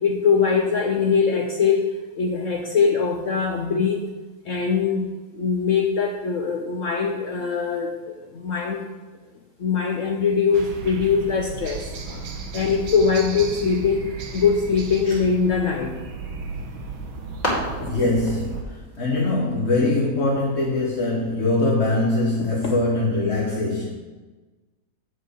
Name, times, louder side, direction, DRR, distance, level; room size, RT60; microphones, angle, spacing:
voice 1, 0.0-1.9 2.2-4.1 4.5-8.9 9.6-11.9 12.5-16.0 22.4-22.7, left 5 dB, 70° left, 2 dB, 0.7 m, -22 dB
sound 1, 10.5-18.6, right 4 dB, 90° right, 1.8 m, -35 dB
sound 2, 16.5-21.6, equal, 20° left, 2.5 m, -35 dB
voice 2, 17.8-23.9, left 2 dB, 40° left, -4 dB, 1.4 m, -23 dB
8.0 x 5.3 x 6.4 m, 1.2 s
omnidirectional pair, 2.1 m